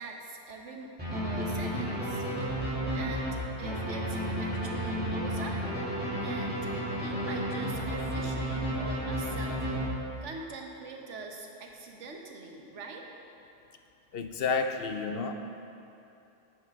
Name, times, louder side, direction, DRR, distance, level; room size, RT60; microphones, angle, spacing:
voice 1, 0.0-2.2 2.9-5.6 6.1-9.7 10.2-13.0, right 3 dB, 90° right, 1 dB, 1.3 m, -43 dB
sound 1, 1.0-10.3, equal, 10° right, 2.5 m, -32 dB
voice 2, 14.1-15.3, left 4 dB, 65° left, 6 dB, 0.7 m, -30 dB
10.5 x 8.8 x 3.6 m, 2.8 s
omnidirectional pair, 1.2 m